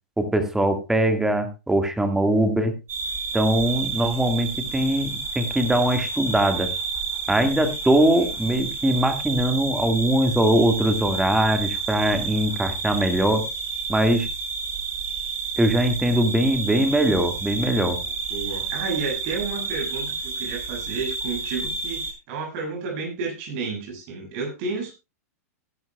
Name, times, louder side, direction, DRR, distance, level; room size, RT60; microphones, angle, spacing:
voice 1, 0.2-2.7 3.3-6.7 7.3-13.5 13.9-14.3 15.6-18.0, right 1 dB, 5° right, 7 dB, 1.8 m, -21 dB
sound 1, 2.9-22.1, right 4 dB, 25° right, 5.1 m, -30 dB
voice 2, 18.3-24.9, right 4 dB, 50° right, 2 dB, 7.4 m, -31 dB
17.5 x 11.5 x 2.3 m, 0.26 s
hypercardioid pair, 125°, 8 cm